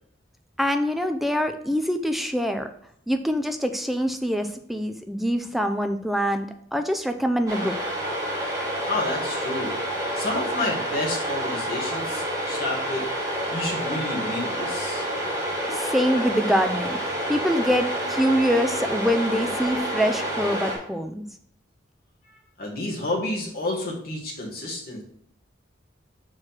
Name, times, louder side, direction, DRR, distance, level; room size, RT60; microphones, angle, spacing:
voice 1, 0.6-2.7 3.1-8.0 15.7-21.2, equal, ahead, 7 dB, 0.4 m, -25 dB
sound 1, 7.5-20.7, right 1 dB, 20° right, 2.3 m, -28 dB
voice 2, 8.9-13.0 13.5-15.1 22.3-25.0, left 2 dB, 50° left, -2 dB, 1.9 m, -30 dB
6.1 x 4.8 x 4.4 m, 0.68 s
head